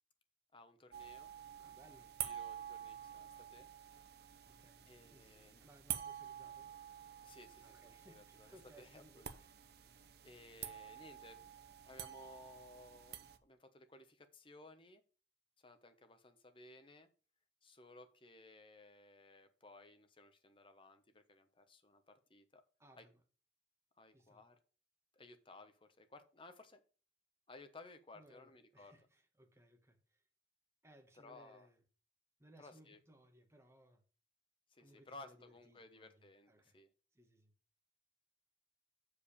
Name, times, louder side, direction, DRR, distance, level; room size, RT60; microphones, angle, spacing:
voice 1, 0.5-1.3 2.2-3.7 4.9-5.6 7.2-9.3 9.9-15.0 15.6-17.1 17.6-22.6 23.0-23.1 24.0-24.6 25.1-26.8 27.5-28.9 31.2-31.7 32.6-33.0 34.7-36.9, left 2 dB, 30° left, 1.1 m, -59 dB
sound 1, 0.9-13.4, right 10 dB, 60° right, 0.7 m, -49 dB
voice 2, 1.6-2.1 4.5-6.8 7.6-9.6 22.8-23.2 24.1-24.4 28.1-30.2 30.8-31.8 32.4-34.0 34.8-36.8 37.1-37.5, right 1 dB, 15° right, 1.4 m, -65 dB
7.0 x 5.0 x 6.8 m
head